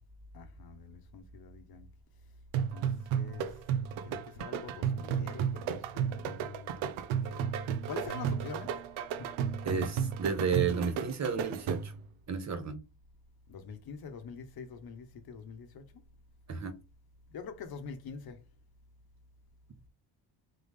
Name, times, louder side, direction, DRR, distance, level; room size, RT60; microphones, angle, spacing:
voice 1, 0.3-1.9 2.7-2.9 3.1-3.5 4.0-7.0 7.3-7.5 7.9-8.8 9.2-9.3 13.5-15.8 17.3-18.4, left 5 dB, 50° left, 0.9 m, -45 dB
sound 1, 2.5-12.1, right 8 dB, 85° right, 0.7 m, -33 dB
voice 2, 9.6-11.9 12.3-12.8 16.5-16.7, right 6 dB, 35° right, 0.8 m, -32 dB
3.8 x 3.3 x 3.5 m
cardioid pair, 120°, 46 cm